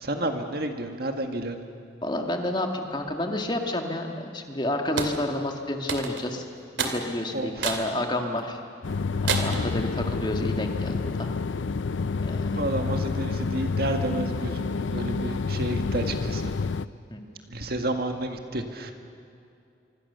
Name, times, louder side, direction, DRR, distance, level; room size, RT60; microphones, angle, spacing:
voice 1, 0.0-1.6 7.3-7.7 9.3-9.7 12.5-16.5 17.5-18.9, right 1 dB, 55° right, 5 dB, 1.9 m, -31 dB
voice 2, 2.0-6.5 6.8-8.6 9.2-11.3 12.2-12.6 17.1-17.2, left 1 dB, 25° left, 3 dB, 2.0 m, -30 dB
sound 1, 5.0-5.2 5.9-6.3 6.8-7.0 7.6-7.9 8.4-8.5 9.3-9.7, right 5 dB, 85° right, 2.6 m, -28 dB
sound 2, 8.8-16.9, left 4 dB, 85° left, 0.6 m, -28 dB
26.0 x 25.0 x 6.9 m, 2.5 s
head